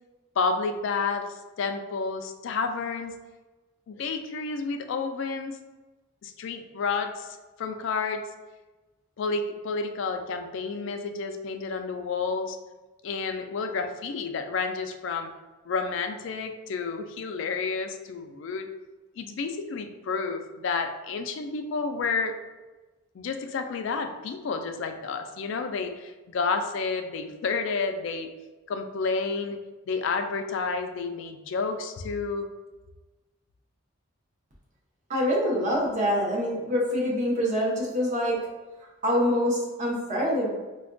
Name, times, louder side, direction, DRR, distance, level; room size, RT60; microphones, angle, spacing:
voice 1, 0.4-3.1 3.9-5.6 6.2-8.2 9.2-12.6 13.0-15.3 15.7-18.7 19.2-22.3 23.1-28.3 28.7-29.6 29.9-32.5, left 4 dB, 55° left, 6 dB, 0.3 m, -30 dB
voice 2, 35.1-38.4 39.0-40.5, equal, 35° right, -4 dB, 0.7 m, -25 dB
4.2 x 2.2 x 2.5 m, 1.2 s
head